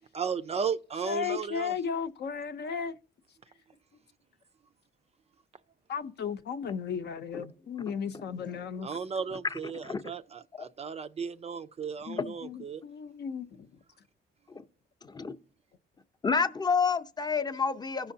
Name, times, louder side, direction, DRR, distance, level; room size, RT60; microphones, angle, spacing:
voice 1, 0.1-1.7 8.8-12.8, right 6 dB, 35° right, 0.4 m, -35 dB
voice 2, 1.0-2.9 5.9-8.9 12.1-13.7, left 6 dB, 55° left, 0.7 m, -35 dB
voice 3, 9.5-10.0 14.6-14.7 15.1-15.3 16.2-18.1, left 5 dB, 20° left, 0.6 m, -29 dB
16.0 x 5.6 x 2.7 m
cardioid pair, 90°, 20 cm